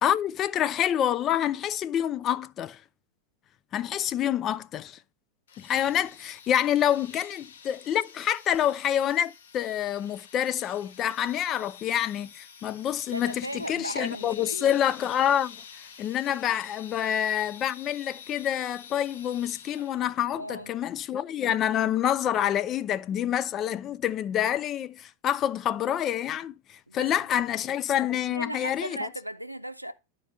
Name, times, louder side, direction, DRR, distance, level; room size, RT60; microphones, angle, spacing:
voice 1, 0.0-2.8 3.7-5.0 5.6-15.6 16.0-29.1, left 10 dB, 30° left, 0.4 m, -27 dB
sound 1, 5.5-20.2, left 7 dB, 60° left, 1.2 m, -49 dB
voice 2, 13.1-14.7 20.4-20.7 26.9-27.1 28.2-29.9, right 1 dB, 90° right, 0.5 m, -36 dB
11.0 x 4.5 x 3.6 m
figure-of-eight pair, 90°, 0 cm